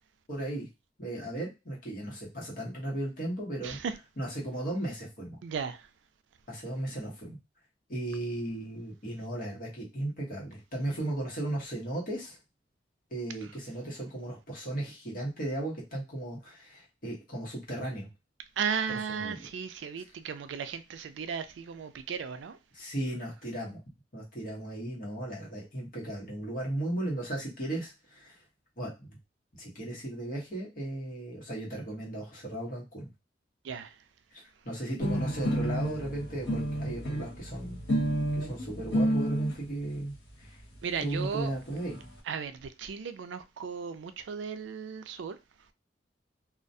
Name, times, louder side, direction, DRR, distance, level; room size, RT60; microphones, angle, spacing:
voice 1, 0.3-0.7 1.0-3.8 4.2-5.4 6.5-7.4 7.9-12.4 13.1-18.1 18.9-19.5 22.7-23.8 24.1-28.4 28.8-29.2 29.6-33.1 34.3-37.8 38.3-40.6 41.0-42.0, right 1 dB, 50° left, 1.0 m, -36 dB
voice 2, 5.4-5.9 18.6-22.6 33.6-33.9 40.8-41.5 42.3-45.4, right 6 dB, 90° right, 0.4 m, -35 dB
sound 1, 35.0-39.6 40.4-40.5 40.8-40.9 41.1-41.2 41.4-42.1, equal, 85° left, 1.0 m, -30 dB
2.3 x 2.1 x 2.6 m
head